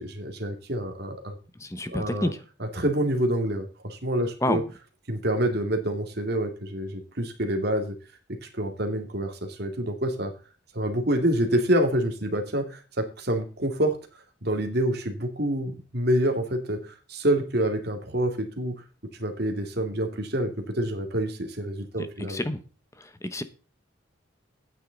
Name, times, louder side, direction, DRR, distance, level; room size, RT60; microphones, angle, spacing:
voice 1, 0.0-1.4 1.9-2.3 2.6-4.6 5.1-8.0 8.5-10.3 10.7-14.0 14.4-18.7 19.2-22.4, right 1 dB, 50° right, 5 dB, 2.2 m, -27 dB
voice 2, 1.6-2.4 4.4-4.6 22.0-22.6 23.0-23.4, left 1 dB, 15° left, 11 dB, 0.9 m, -29 dB
11.5 x 9.4 x 3.9 m, 0.34 s
head